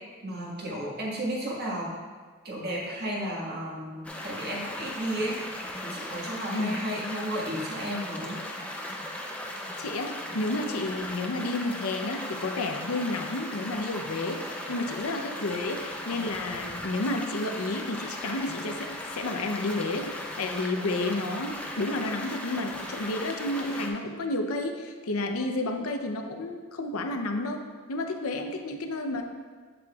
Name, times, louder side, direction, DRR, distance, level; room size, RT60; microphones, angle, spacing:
voice 1, 0.2-2.0 2.4-8.4, right 1 dB, 45° right, -4 dB, 1.6 m, -33 dB
sound 1, 4.0-23.9, left 1 dB, 5° left, 0.5 m, -37 dB
voice 2, 6.5-6.8 9.8-27.6 27.9-29.2, left 2 dB, 80° left, 5 dB, 0.7 m, -31 dB
7.8 x 7.6 x 2.4 m, 1.5 s
head